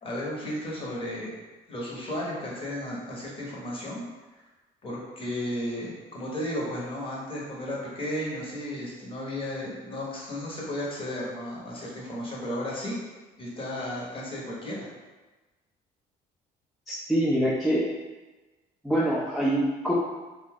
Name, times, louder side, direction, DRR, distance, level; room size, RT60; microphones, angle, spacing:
voice 1, 0.0-1.4 1.7-4.0 4.3-4.4 4.8-13.0 13.4-14.9, left 1 dB, 30° left, -4 dB, 0.9 m, -34 dB
voice 2, 16.9-17.9 18.8-19.9, right 1 dB, ahead, -6 dB, 0.4 m, -25 dB
2.6 x 2.3 x 3.4 m, 1.2 s
cardioid pair, 110°, 17 cm